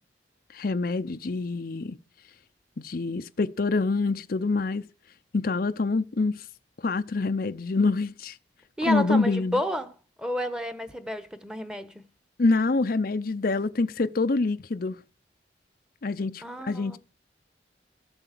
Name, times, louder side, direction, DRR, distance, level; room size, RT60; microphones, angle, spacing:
voice 1, 0.5-2.0 2.8-4.8 5.3-6.4 6.8-8.4 8.9-9.6 12.4-15.0 16.0-17.0, left 3 dB, 55° left, 0.6 m, -26 dB
voice 2, 8.8-9.9 10.2-12.1 16.4-17.0, equal, 5° right, 1.0 m, -30 dB
13.5 x 7.9 x 7.6 m
head